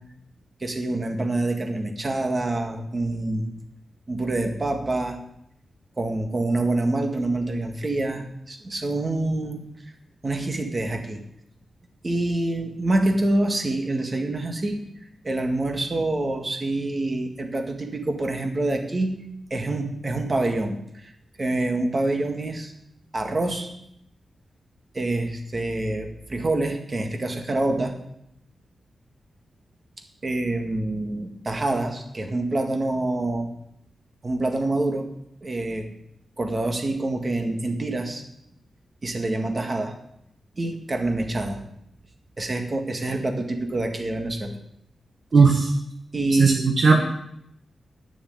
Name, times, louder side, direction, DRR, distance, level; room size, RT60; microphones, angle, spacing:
voice 1, 0.6-3.5 4.1-5.2 6.0-9.6 10.2-11.2 12.0-14.9 15.2-19.2 19.5-21.1 21.4-22.7 23.1-23.7 24.9-27.9 30.2-33.5 34.2-35.1 35.4-35.9 36.4-38.2 39.0-40.0 40.6-41.6 42.4-44.6 46.1-46.8, right 2 dB, 30° right, 4 dB, 1.7 m, -26 dB
voice 2, 45.3-45.7 46.4-47.0, right 4 dB, 50° right, 3 dB, 1.2 m, -16 dB
9.5 x 7.0 x 8.9 m, 0.77 s
wide cardioid pair, 125°, 0 cm